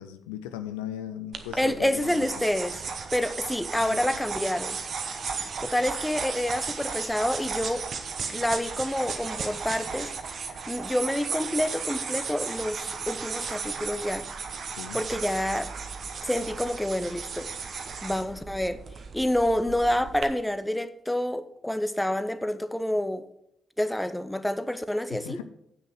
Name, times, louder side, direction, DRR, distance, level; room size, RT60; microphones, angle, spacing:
voice 1, 0.0-2.3 3.8-4.2 14.7-15.0 25.1-25.4, left 10 dB, 80° left, 0.5 m, -38 dB
sound 1, 1.3-20.2, right 5 dB, 55° right, 1.0 m, -35 dB
voice 2, 1.6-2.8 3.1-4.8 5.6-7.9 8.3-10.1 10.7-14.3 14.9-15.7 16.2-17.5 18.0-18.8 19.1-23.3 23.8-25.4, left 1 dB, 5° left, 0.8 m, -28 dB
7.9 x 6.3 x 6.3 m
hypercardioid pair, 45°, 0 cm